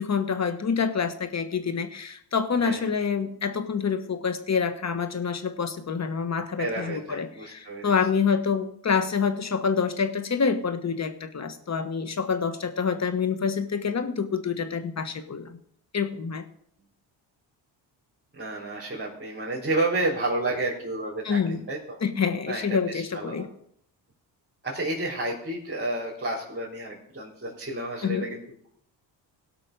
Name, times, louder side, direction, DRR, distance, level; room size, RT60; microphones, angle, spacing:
voice 1, 0.0-15.6 15.9-16.4 21.2-21.6 22.0-23.5 28.0-28.3, left 6 dB, 35° left, 10 dB, 1.4 m, -27 dB
voice 2, 6.6-7.9 18.3-22.0 22.5-23.5 24.6-28.7, right 2 dB, 20° right, -6 dB, 3.9 m, -31 dB
17.0 x 6.0 x 5.2 m, 0.67 s
supercardioid pair, 70°, 47 cm